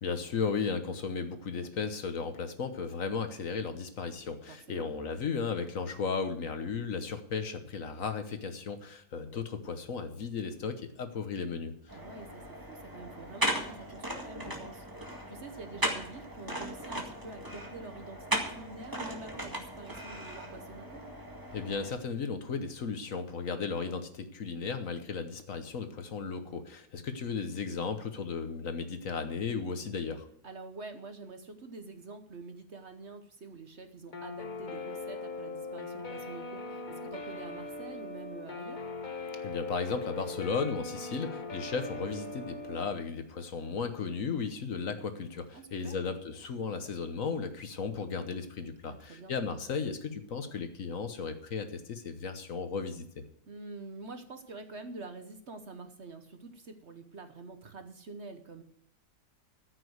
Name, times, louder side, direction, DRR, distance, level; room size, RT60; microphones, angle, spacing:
voice 1, 0.0-11.8 21.5-30.3 39.4-53.0, left 5 dB, 55° left, 9 dB, 1.3 m, -35 dB
voice 2, 4.5-4.9 11.9-14.8 15.3-21.0 30.4-38.9 45.5-46.0 48.8-49.3 53.5-58.6, right 3 dB, 45° right, 7 dB, 1.2 m, -46 dB
sound 1, 11.9-21.9, right 1 dB, 15° right, 1.8 m, -37 dB
Guitar, 34.1-42.8, left 3 dB, 35° left, 0.9 m, -40 dB
14.0 x 6.3 x 7.9 m, 0.68 s
omnidirectional pair, 1.8 m